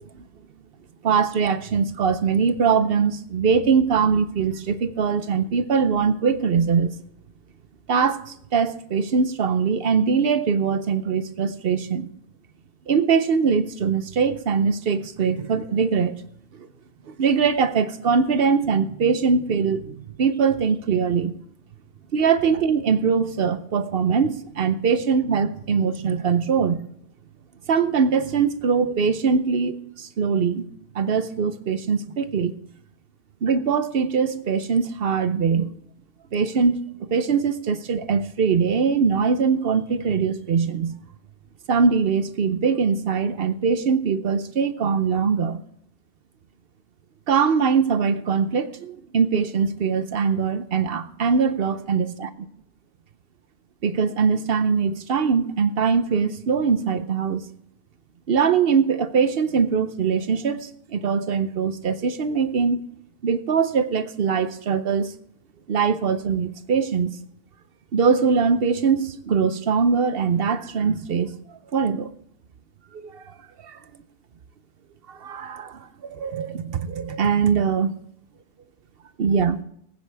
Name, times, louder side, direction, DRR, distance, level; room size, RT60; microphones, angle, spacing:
voice 1, 1.0-6.9 7.9-12.1 12.9-16.1 16.6-16.7 17.1-21.3 22.1-26.8 27.7-30.7 30.9-32.5 33.4-35.7 36.3-40.9 41.7-45.6 47.3-52.3 53.8-57.4 58.3-62.8 63.2-65.1 65.7-67.1 67.9-71.3 71.7-72.1 72.9-73.3 73.6-73.8 75.1-78.0 79.2-79.6, right 6 dB, 55° right, 0.9 m, -22 dB
19.5 x 9.4 x 3.4 m
omnidirectional pair, 1.2 m